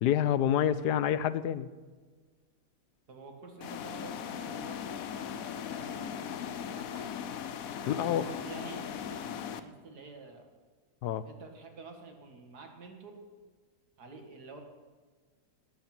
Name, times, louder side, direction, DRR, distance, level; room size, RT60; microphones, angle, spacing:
voice 1, 0.0-1.7 7.9-8.3 11.0-11.3, left 10 dB, 90° left, 15 dB, 1.3 m, -27 dB
voice 2, 3.1-7.1 7.8-10.5 11.2-13.2 14.0-14.6, right 4 dB, 75° right, 3 dB, 2.5 m, -49 dB
sound 1, 3.6-9.6, left 8 dB, 65° left, 1.1 m, -38 dB
19.0 x 8.6 x 6.0 m, 1.4 s
omnidirectional pair, 1.7 m